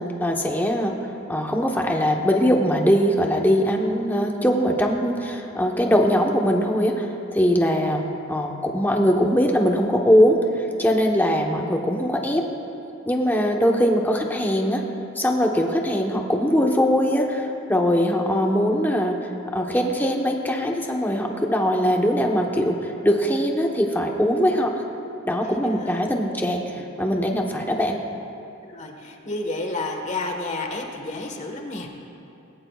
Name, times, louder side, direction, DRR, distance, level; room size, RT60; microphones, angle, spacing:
voice 1, 0.2-0.9 1.3-8.0 8.3-12.4 13.1-14.8 15.2-19.1 19.5-24.8 25.2-28.0, equal, 10° left, 1 dB, 1.1 m, -21 dB
voice 2, 25.4-26.1 26.7-26.8 28.6-31.9, left 2 dB, 35° left, 2 dB, 1.4 m, -31 dB
20.0 x 18.5 x 2.4 m, 2.8 s
head